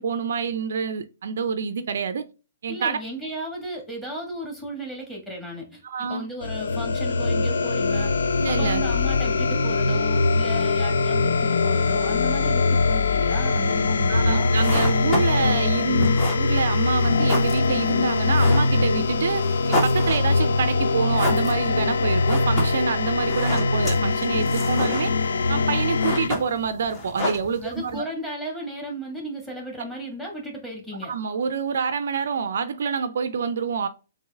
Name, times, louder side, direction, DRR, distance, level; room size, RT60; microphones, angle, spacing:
voice 1, 0.0-2.2 2.6-3.0 5.8-6.2 8.4-8.8 14.1-25.1 25.5-28.0 31.0-33.9, right 6 dB, 60° right, 0.4 m, -27 dB
voice 2, 2.7-5.8 6.1-8.1 8.5-14.5 27.6-31.1, right 1 dB, 10° left, 1.8 m, -35 dB
sound 1, 6.4-26.3, left 3 dB, 70° left, 0.3 m, -22 dB
sound 2, 14.4-28.0, left 1 dB, 30° left, 1.4 m, -32 dB
6.8 x 2.6 x 2.2 m
figure-of-eight pair, 120°, 0 cm